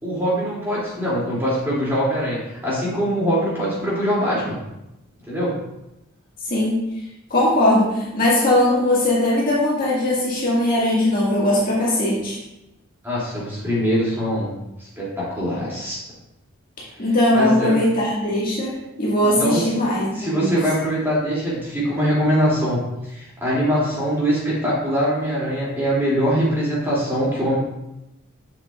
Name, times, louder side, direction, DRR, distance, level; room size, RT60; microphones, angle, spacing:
voice 1, 0.0-4.6 5.3-5.5 13.0-14.5 14.8-16.0 17.3-17.7 19.2-19.6 20.1-22.8 23.1-27.6, equal, 10° right, -7 dB, 2.6 m, -22 dB
voice 2, 6.4-6.8 7.3-12.4 16.8-20.6, left 1 dB, 45° left, -6 dB, 2.0 m, -20 dB
7.3 x 7.0 x 2.4 m, 0.91 s
head